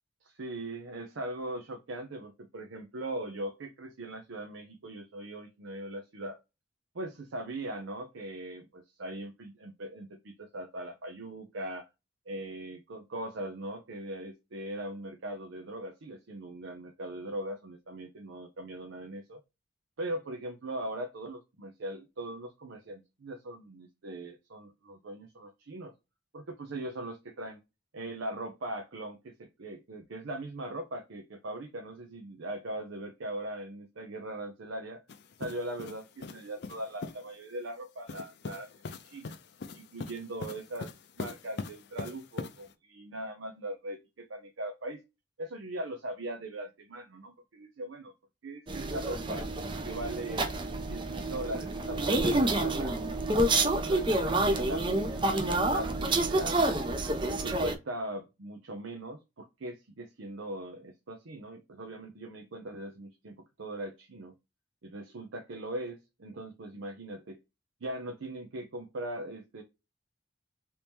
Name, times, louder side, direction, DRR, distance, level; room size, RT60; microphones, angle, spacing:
voice 1, 0.2-6.4 7.0-11.9 12.3-19.4 20.0-25.9 26.3-27.6 27.9-35.0 35.4-39.4 39.7-45.0 45.4-48.1 48.4-49.4 49.8-50.5 50.9-56.8 57.3-64.3 64.8-67.4 67.8-69.6, right 1 dB, 90° right, 4 dB, 0.6 m, -40 dB
sound 1, 35.1-37.3 38.1-42.7, left 4 dB, 55° left, 0.4 m, -42 dB
sound 2, 48.7-57.7, right 2 dB, 25° right, 0.4 m, -28 dB
3.0 x 2.8 x 3.4 m, 0.25 s
head